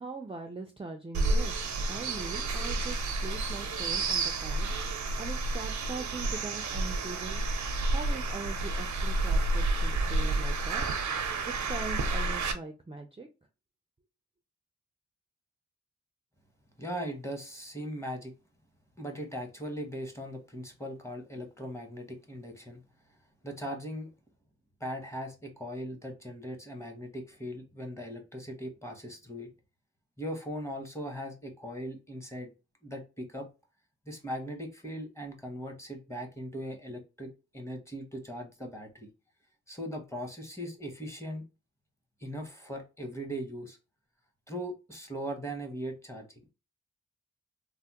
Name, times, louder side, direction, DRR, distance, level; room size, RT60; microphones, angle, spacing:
voice 1, 0.0-4.7 5.2-7.4 7.9-10.9 11.6-13.3, right 3 dB, 20° right, 0.4 m, -41 dB
sound 1, 1.1-12.5, right 2 dB, 80° right, 0.6 m, -30 dB
voice 2, 16.8-18.3 19.0-22.8 23.4-24.1 24.8-29.5 30.2-32.5 32.8-33.5 34.1-39.1 39.7-41.4 42.2-43.8 44.5-46.5, equal, 10° left, 0.9 m, -39 dB
3.2 x 2.1 x 2.8 m
wide cardioid pair, 80°, 29 cm